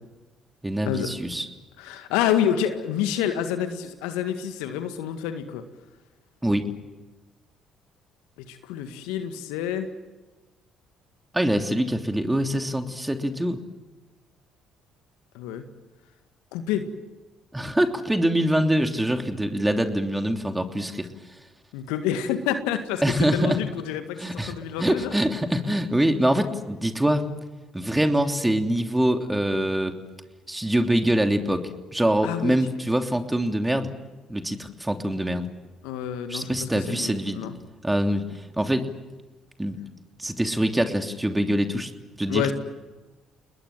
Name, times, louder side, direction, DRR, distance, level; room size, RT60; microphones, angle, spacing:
voice 1, 0.6-1.5 6.4-6.7 11.3-13.6 17.5-21.4 23.0-23.6 24.2-24.5 24.8-27.3 27.7-29.9 30.5-33.9 34.3-35.5 36.3-37.4 37.8-38.9 39.6-39.8 40.2-41.9 42.2-42.5, right 1 dB, 10° right, 5 dB, 3.2 m, -24 dB
voice 2, 1.8-5.6 8.4-9.9 15.3-15.7 16.5-16.9 21.7-23.0 23.3-24.2 24.4-25.1 32.2-32.8 35.8-37.5 42.3-42.5, left 9 dB, 75° left, 8 dB, 1.9 m, -28 dB
30.0 x 21.0 x 7.5 m, 1.2 s
hypercardioid pair, 50°, 0 cm